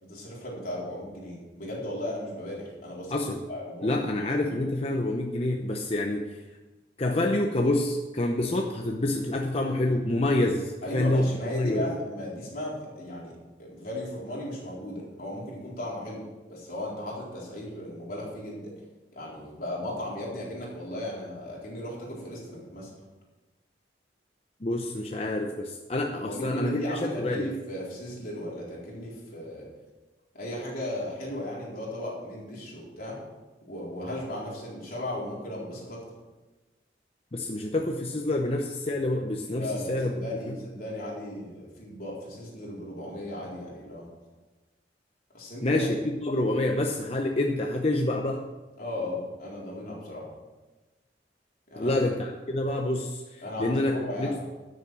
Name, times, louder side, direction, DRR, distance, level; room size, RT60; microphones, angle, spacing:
voice 1, 0.0-3.2 3.5-4.0 4.4-4.5 10.8-16.2 16.5-18.7 19.1-22.9 26.1-29.7 30.3-33.2 33.7-36.0 39.5-44.1 45.3-45.9 48.8-50.2 51.7-52.1 53.4-54.3, left 1 dB, 50° left, -5 dB, 4.0 m, -36 dB
voice 2, 3.1-3.4 3.8-6.4 7.0-11.3 11.5-11.9 24.6-27.5 37.3-40.5 45.6-48.5 51.8-54.4, left 1 dB, 35° left, 2 dB, 0.7 m, -27 dB
12.5 x 6.9 x 6.2 m, 1.2 s
head